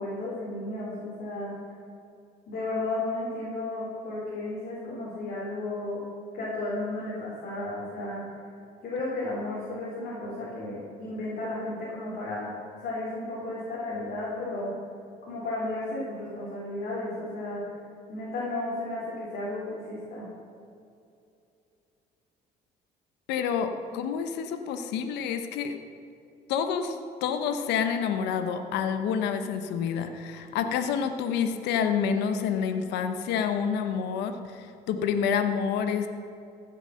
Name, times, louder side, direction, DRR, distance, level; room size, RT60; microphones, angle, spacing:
voice 1, 0.0-1.5 2.5-6.0 6.3-8.2 8.8-12.5 12.8-14.7 15.2-17.6 18.1-20.3, left 2 dB, 60° left, -7 dB, 3.8 m, -33 dB
voice 2, 23.3-25.8 26.5-36.1, left 7 dB, 90° left, 8 dB, 1.0 m, -28 dB
15.0 x 8.1 x 6.4 m, 2.6 s
cardioid pair, 110°, 17 cm